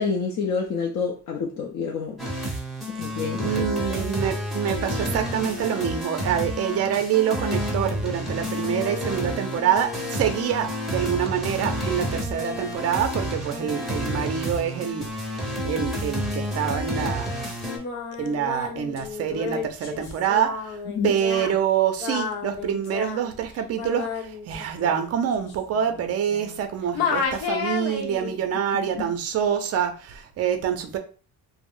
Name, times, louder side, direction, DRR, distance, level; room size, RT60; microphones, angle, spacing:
voice 1, 0.0-2.2 3.0-3.7 13.7-13.8 20.9-21.1 28.7-29.1, left 5 dB, 50° left, 0.6 m, -28 dB
sound 1, 2.2-17.8, equal, ahead, 0.7 m, -30 dB
voice 2, 3.4-17.3 18.2-20.8 21.0-31.0, right 9 dB, 40° right, 0.5 m, -26 dB
Singing, 17.6-26.6 26.9-28.4, left 6 dB, 90° left, 0.8 m, -32 dB
2.4 x 2.0 x 3.5 m
cardioid pair, 125°, 38 cm